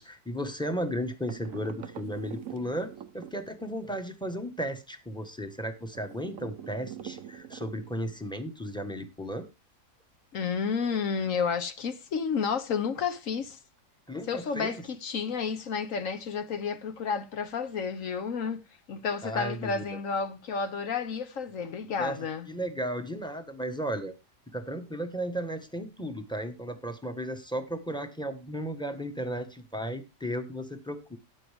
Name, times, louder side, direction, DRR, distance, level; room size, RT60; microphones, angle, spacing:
voice 1, 0.0-9.5 14.1-14.8 19.2-20.0 22.0-22.2 22.5-24.1 24.5-31.2, equal, 5° left, 1.2 m, -35 dB
sound 1, 1.3-3.9 5.9-8.2, right 9 dB, 60° right, 1.1 m, -44 dB
voice 2, 10.3-13.6 14.3-18.6 18.9-22.5, left 6 dB, 55° left, 1.2 m, -31 dB
13.0 x 9.0 x 3.5 m
omnidirectional pair, 1.8 m